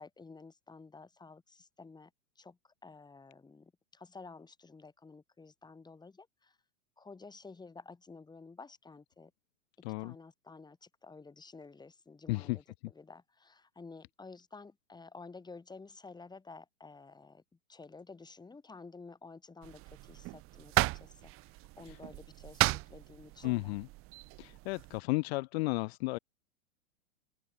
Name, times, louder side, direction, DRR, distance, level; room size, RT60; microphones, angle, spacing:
voice 1, 0.0-2.1 2.4-6.6 7.0-9.3 10.0-12.6 12.9-17.4 17.7-23.7, left 4 dB, 10° left, 4.4 m, -52 dB
voice 2, 9.8-10.1 12.3-12.6 21.9-22.0 23.4-23.9 24.4-26.2, left 23 dB, 45° left, 0.9 m, -33 dB
sound 1, 19.6-25.0, right 21 dB, 30° right, 1.0 m, -35 dB
hypercardioid pair, 115°, 42 cm